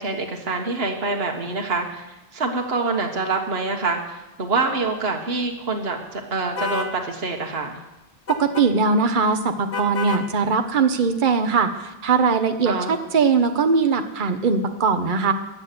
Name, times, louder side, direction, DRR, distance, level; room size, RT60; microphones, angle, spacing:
voice 1, 0.0-7.8 12.6-13.0, right 3 dB, 75° right, 3 dB, 1.7 m, -26 dB
sound 1, 6.6-6.9 8.3-8.7 9.7-10.3, left 4 dB, 65° left, 1.6 m, -28 dB
voice 2, 8.3-15.3, right 5 dB, 55° right, 8 dB, 1.1 m, -20 dB
15.5 x 10.5 x 6.8 m, 0.98 s
omnidirectional pair, 1.0 m